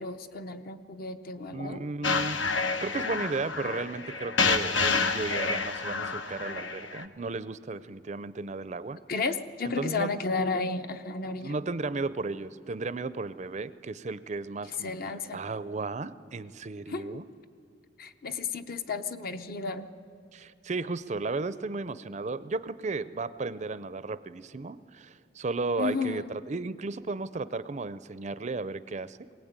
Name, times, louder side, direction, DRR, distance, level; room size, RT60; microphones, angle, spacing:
voice 1, 0.0-1.9 9.1-11.6 14.8-15.4 16.9-17.2 18.0-19.9 25.8-26.3, left 4 dB, 50° left, 9 dB, 0.8 m, -33 dB
voice 2, 1.5-9.0 9.7-10.1 11.4-14.9 15.3-17.2 20.3-29.2, right 3 dB, 40° right, 15 dB, 0.5 m, -34 dB
sound 1, 2.0-7.0, left 4 dB, 85° left, 1.0 m, -29 dB
22.0 x 18.0 x 8.9 m, 2.4 s
head